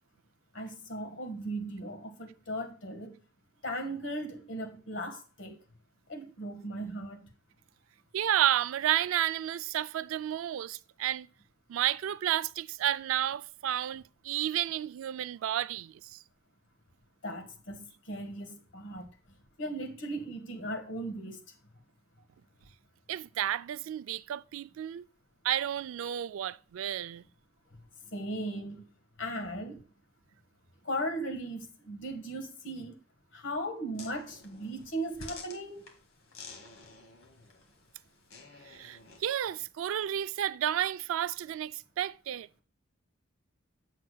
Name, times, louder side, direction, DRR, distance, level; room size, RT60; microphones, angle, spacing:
voice 1, 0.5-3.1 3.6-5.6 6.1-7.2 17.2-19.1 19.6-21.4 28.1-28.9 29.2-29.8 30.8-32.9 33.3-35.9, right 1 dB, 65° left, 1.6 m, -37 dB
voice 2, 8.1-11.3 11.7-16.2 23.1-25.0 25.4-27.2 38.6-42.6, right 11 dB, 90° right, 0.3 m, -31 dB
sound 1, 34.0-39.4, left 3 dB, 85° left, 2.0 m, -50 dB
8.3 x 7.3 x 2.3 m
head